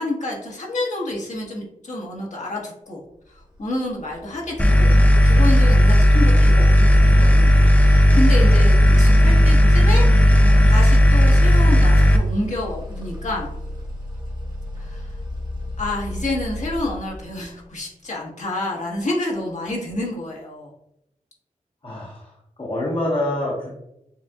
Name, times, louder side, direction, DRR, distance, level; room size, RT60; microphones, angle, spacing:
voice 1, 0.0-3.0 3.3-4.9 5.2-7.5 7.8-10.0 10.7-13.5 14.7-15.2 15.8-20.7, left 1 dB, 60° left, -3 dB, 1.5 m, -28 dB
sound 1, 3.3-17.8, left 1 dB, 30° right, 1.1 m, -36 dB
sound 2, 4.6-12.2, equal, 10° left, 0.5 m, -13 dB
voice 2, 21.8-22.3 22.6-23.7, left 1 dB, 40° left, -4 dB, 1.2 m, -25 dB
7.0 x 2.5 x 2.4 m, 0.80 s
wide cardioid pair, 85°, 14 cm